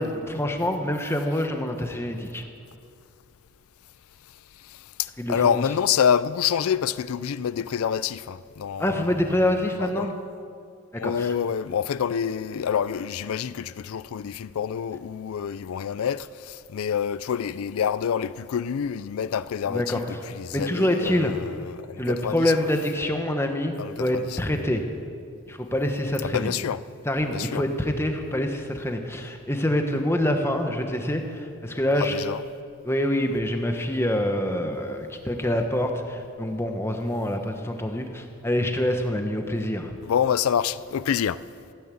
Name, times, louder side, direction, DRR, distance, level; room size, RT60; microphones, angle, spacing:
voice 1, 0.0-2.4 5.2-5.6 8.8-10.1 10.9-11.3 19.7-20.0 20.5-21.3 22.0-24.8 25.5-26.5 27.0-32.1 32.8-39.9, left 1 dB, 10° left, 1.1 m, -26 dB
voice 2, 4.3-10.1 11.0-22.5 23.8-24.4 26.2-26.8 27.3-27.6 32.0-32.4 40.0-41.5, left 8 dB, 75° left, 0.4 m, -27 dB
16.0 x 9.6 x 8.4 m
head